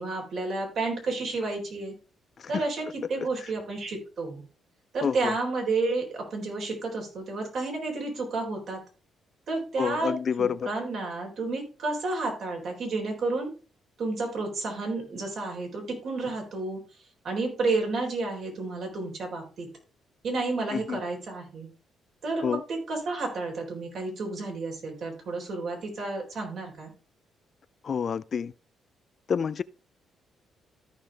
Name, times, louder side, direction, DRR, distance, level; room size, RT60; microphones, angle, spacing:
voice 1, 0.0-1.9 2.5-4.4 4.9-8.8 9.5-13.5 14.0-16.8 17.2-19.7 20.2-21.7 22.2-26.9, right 3 dB, 60° right, 3.8 m, -31 dB
voice 2, 5.0-5.3 9.8-10.7 20.7-21.0 22.4-22.6 27.8-28.5 29.3-29.6, left 7 dB, 50° left, 0.4 m, -28 dB
14.0 x 5.3 x 3.4 m
cardioid pair, 90°, 0 cm